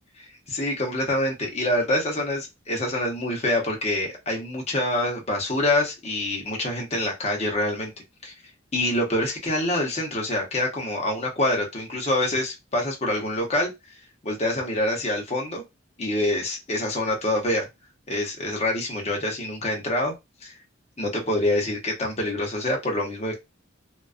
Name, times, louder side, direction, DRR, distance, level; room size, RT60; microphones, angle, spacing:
voice 1, 0.2-7.9 8.2-8.3 8.7-13.7 14.2-15.6 16.0-17.7 18.1-20.1 20.4-20.5 21.0-23.4, left 1 dB, 35° left, 0 dB, 0.8 m, -26 dB
2.3 x 2.2 x 2.4 m, 0.21 s
head